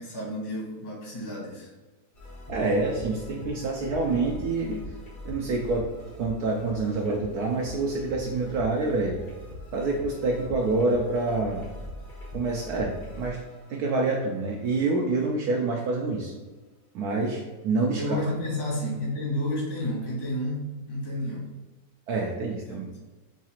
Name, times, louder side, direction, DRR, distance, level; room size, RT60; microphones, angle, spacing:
voice 1, 0.0-1.7 18.0-21.5 22.7-22.8, left 1 dB, 80° left, -4 dB, 2.3 m, -31 dB
sound 1, 2.1-15.3, left 1 dB, 50° left, 0.6 m, -42 dB
voice 2, 2.5-4.8 5.2-5.9 6.2-9.2 9.7-11.6 12.3-13.4 13.7-16.3 16.9-18.2 22.1-22.9, right 3 dB, 75° right, 0 dB, 0.9 m, -27 dB
4.7 x 2.4 x 4.2 m, 1.2 s
omnidirectional pair, 2.0 m